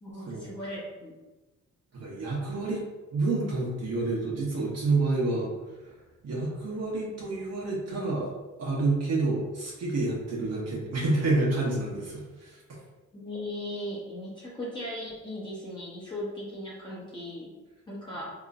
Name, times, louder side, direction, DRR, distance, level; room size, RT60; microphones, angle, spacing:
voice 1, 0.0-1.1 13.1-17.6 17.9-18.3, left 1 dB, 15° left, -8 dB, 1.0 m, -37 dB
voice 2, 1.9-2.8 3.1-5.9 6.2-12.6, right 2 dB, 55° right, -5 dB, 1.2 m, -29 dB
3.7 x 3.0 x 2.5 m, 1.2 s
cardioid pair, 90°, 30 cm